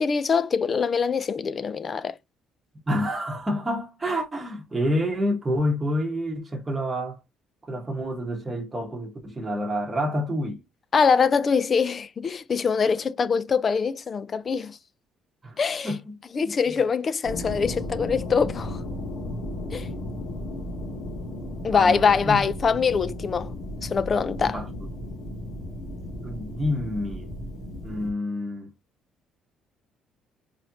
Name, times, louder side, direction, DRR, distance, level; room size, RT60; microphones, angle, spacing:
voice 1, 0.0-2.2 10.9-14.8 15.6-15.9 16.3-18.8 19.7-19.9 21.6-23.5 23.8-24.6, left 5 dB, 25° left, 0.3 m, -23 dB
voice 2, 2.9-7.2 7.6-10.6 15.4-16.5 21.7-22.4 24.4-24.7 26.2-27.3 27.8-28.7, equal, 10° right, 1.0 m, -28 dB
sound 1, 17.2-28.1, left 1 dB, 65° left, 1.8 m, -35 dB
4.2 x 3.2 x 2.7 m
cardioid pair, 180°, 0 cm